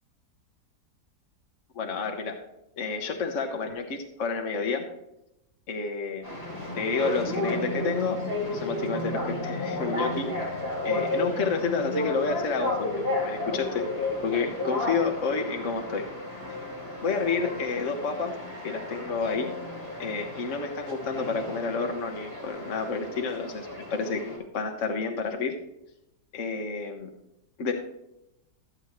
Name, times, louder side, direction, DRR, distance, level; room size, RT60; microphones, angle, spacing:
voice 1, 1.7-2.4 2.8-4.8 5.7-6.3 6.8-8.2 8.5-10.6 10.8-13.8 14.2-16.1 17.0-18.4 18.6-19.5 20.0-25.5 26.3-27.1 27.6-27.7, left 4 dB, 50° left, 4 dB, 1.5 m, -30 dB
sound 1, 6.2-24.4, left 2 dB, 35° left, 3.6 m, -33 dB
14.0 x 8.1 x 3.1 m, 0.85 s
omnidirectional pair, 1.8 m